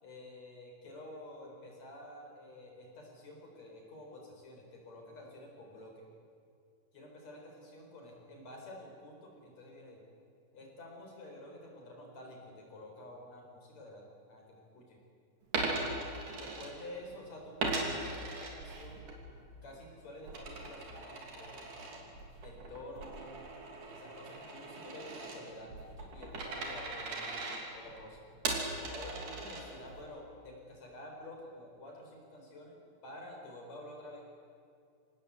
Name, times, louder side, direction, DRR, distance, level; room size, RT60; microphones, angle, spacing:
voice 1, 0.0-6.1 6.9-10.0 10.5-15.0 16.4-19.1 19.6-22.1 22.4-23.4 23.9-27.4 27.7-28.2 28.9-32.8 33.0-34.3, left 1 dB, 55° left, 0 dB, 5.7 m, -50 dB
Coin (dropping), 15.4-17.1 17.6-19.2 19.6-30.0, right 3 dB, 80° right, 4.5 m, -39 dB
26.0 x 18.0 x 8.2 m, 2.4 s
omnidirectional pair, 3.7 m